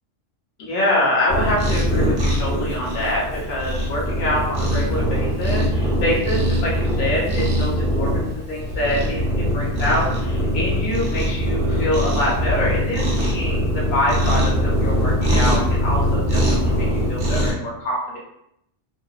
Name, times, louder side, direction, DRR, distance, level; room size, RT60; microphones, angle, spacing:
voice 1, 0.6-18.2, left 1 dB, 50° left, -5 dB, 0.8 m, -25 dB
Cat, 1.3-17.5, equal, 55° right, 0.7 m, -22 dB
2.6 x 2.1 x 2.3 m, 0.77 s
omnidirectional pair, 1.3 m